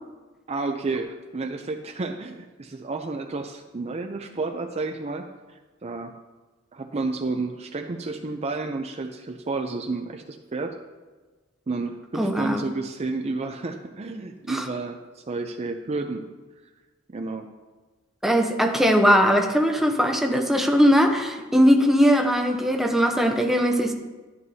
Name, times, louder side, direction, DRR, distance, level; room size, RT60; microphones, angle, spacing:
voice 1, 0.5-6.2 6.7-10.7 11.7-16.3 17.1-17.5, right 3 dB, 35° right, 5 dB, 0.5 m, -31 dB
voice 2, 12.1-12.6 14.5-14.6 18.2-23.9, equal, ahead, 3 dB, 0.8 m, -20 dB
12.0 x 9.4 x 2.8 m, 1.3 s
head